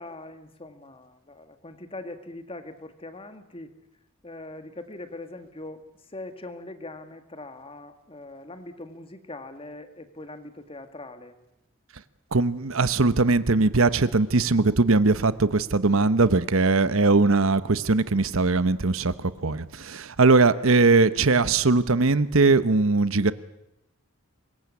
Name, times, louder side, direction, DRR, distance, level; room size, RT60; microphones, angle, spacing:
voice 1, 0.0-3.7 4.2-5.8 6.1-11.3 20.5-20.7, left 2 dB, 25° left, 8 dB, 2.0 m, -41 dB
voice 2, 12.3-23.3, right 3 dB, 70° right, 14 dB, 1.0 m, -20 dB
25.0 x 21.5 x 8.5 m, 0.86 s
head